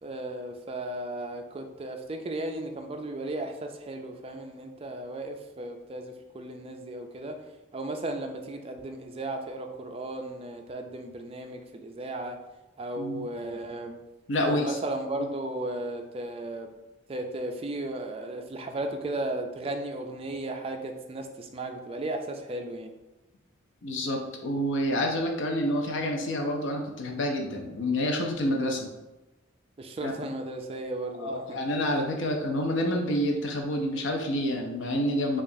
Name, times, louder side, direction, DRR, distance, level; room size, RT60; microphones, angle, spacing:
voice 1, 0.0-7.3 7.7-12.4 12.8-13.9 14.4-16.7 17.1-22.9 29.8-31.6, right 2 dB, 30° right, 4 dB, 0.3 m, -35 dB
voice 2, 13.0-13.3 14.3-14.8 15.2-15.3 23.8-28.9 30.0-30.1 31.2-35.4, left 1 dB, 65° left, 2 dB, 0.5 m, -28 dB
4.8 x 2.4 x 2.6 m, 1.0 s
head